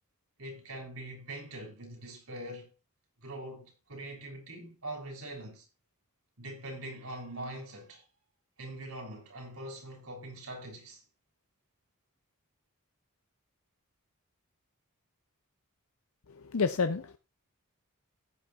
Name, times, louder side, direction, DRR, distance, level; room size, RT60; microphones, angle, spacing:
voice 1, 0.4-2.7 3.2-5.7 6.4-8.0 8.6-11.0, right 1 dB, 75° right, 3.7 m, -43 dB
voice 2, 16.3-17.2, left 5 dB, 70° left, 0.6 m, -30 dB
15.0 x 9.0 x 2.4 m
head